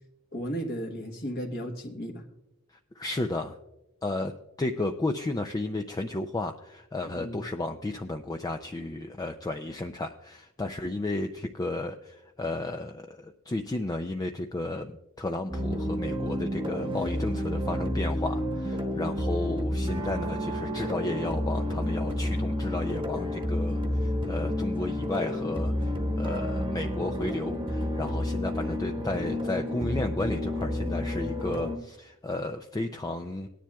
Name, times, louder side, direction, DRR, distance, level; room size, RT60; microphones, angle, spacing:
voice 1, 0.3-2.2 7.1-7.4, equal, 45° left, 2 dB, 1.1 m, -34 dB
voice 2, 3.0-3.6 4.0-33.5, left 2 dB, 15° left, 5 dB, 0.4 m, -33 dB
sound 1, 15.5-31.8, left 1 dB, 20° right, 1.0 m, -30 dB
19.0 x 10.0 x 2.3 m, 0.94 s
head